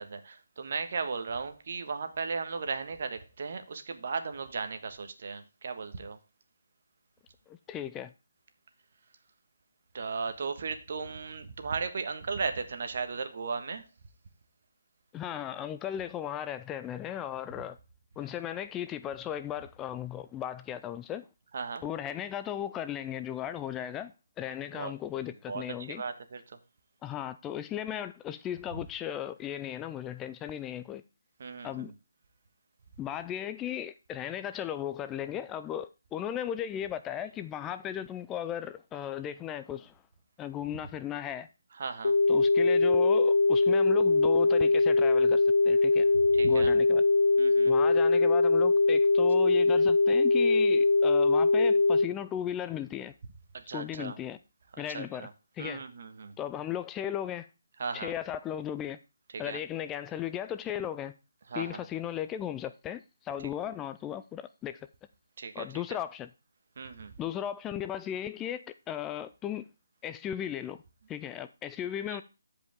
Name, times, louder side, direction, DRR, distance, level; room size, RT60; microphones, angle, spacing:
voice 1, 0.0-6.2 9.9-13.8 21.5-21.8 24.7-24.9 25.5-26.6 31.4-31.9 41.8-42.1 46.3-46.7 47.4-47.7 53.5-54.2 54.9-55.3 55.6-56.3 57.8-58.1 59.3-59.6 61.5-61.9 65.4-65.6 66.8-67.1 72.1-72.2, right 5 dB, 50° right, 1.4 m, -36 dB
voice 2, 7.5-8.1 15.1-17.8 18.2-21.3 21.8-26.0 27.0-31.0 31.6-31.9 33.0-39.9 40.4-41.5 42.3-46.1 46.4-47.0 47.6-53.1 53.7-54.4 54.8-55.3 55.6-55.8 56.4-57.5 57.9-59.0 59.4-61.1 61.5-64.9 65.5-66.3 67.2-69.6 70.0-70.8 71.1-72.2, left 10 dB, 15° left, 0.3 m, -36 dB
sound 1, 42.0-52.0, left 3 dB, 65° left, 0.8 m, -22 dB
13.5 x 5.2 x 3.5 m
figure-of-eight pair, 150°, 0 cm